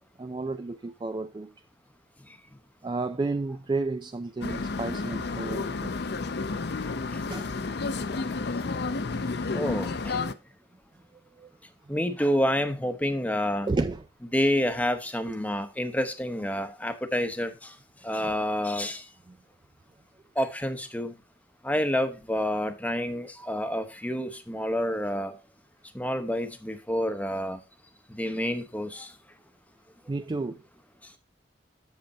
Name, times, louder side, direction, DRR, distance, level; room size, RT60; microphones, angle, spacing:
voice 1, 0.2-1.5 2.8-5.9 7.3-7.5 11.4-11.5 11.9-12.0 13.7-14.1 18.2-18.3 19.3-19.4 30.1-30.6, right 3 dB, 25° right, 0.3 m, -32 dB
sound 1, 4.4-10.3, left 3 dB, 55° left, 0.6 m, -31 dB
voice 2, 9.5-10.2 11.9-13.7 14.3-17.7 18.0-19.0 20.4-21.1 21.6-25.3 25.9-27.6 28.1-29.1, equal, 10° left, 0.8 m, -28 dB
7.9 x 6.5 x 4.1 m
head